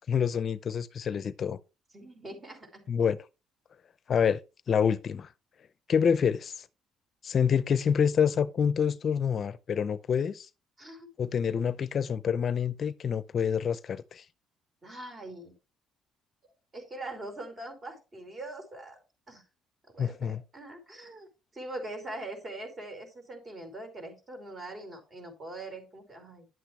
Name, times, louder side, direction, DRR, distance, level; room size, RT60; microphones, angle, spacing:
voice 1, 0.1-1.6 2.9-3.2 4.1-4.4 4.7-5.3 5.9-6.7 7.2-10.5 11.2-14.3 20.0-20.4, left 7 dB, 50° left, 0.6 m, -27 dB
voice 2, 1.9-2.8 10.8-11.1 14.8-15.5 16.7-19.0 19.3-19.4 19.9-21.3 21.5-26.5, right 1 dB, 35° right, 4.9 m, -42 dB
11.0 x 8.2 x 3.2 m
cardioid pair, 85°, 0 cm